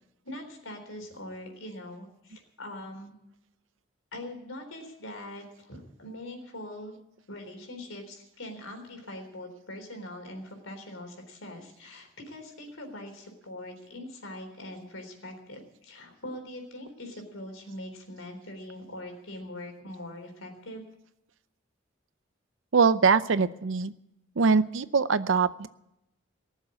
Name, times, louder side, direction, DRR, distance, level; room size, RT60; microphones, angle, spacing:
voice 1, 0.2-3.2 4.1-7.0 7.3-20.8, left 1 dB, 85° left, 4 dB, 3.8 m, -42 dB
voice 2, 22.7-23.9 24.4-25.7, right 5 dB, 75° right, 15 dB, 0.6 m, -23 dB
18.5 x 7.3 x 9.7 m, 0.85 s
head